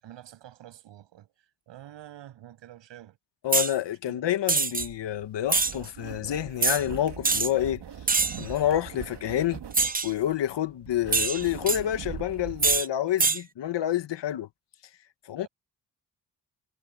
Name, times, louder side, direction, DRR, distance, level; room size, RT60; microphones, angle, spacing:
voice 1, 0.0-3.2 4.1-4.2, right 12 dB, 90° right, 7.6 m, -48 dB
voice 2, 3.4-7.8 8.4-9.6 10.0-14.5 15.3-15.5, left 11 dB, 80° left, 1.8 m, -28 dB
sound 1, 3.5-3.7 4.5-4.9 5.5-5.7 6.6-6.8 7.2-7.5 8.1-8.4 9.7-10.1 11.1-11.8 12.6-12.9 13.2-13.4, right 4 dB, 20° right, 0.8 m, -24 dB
sound 2, 4.8-12.8, right 8 dB, 70° right, 2.6 m, -42 dB
supercardioid pair, 45°, 42 cm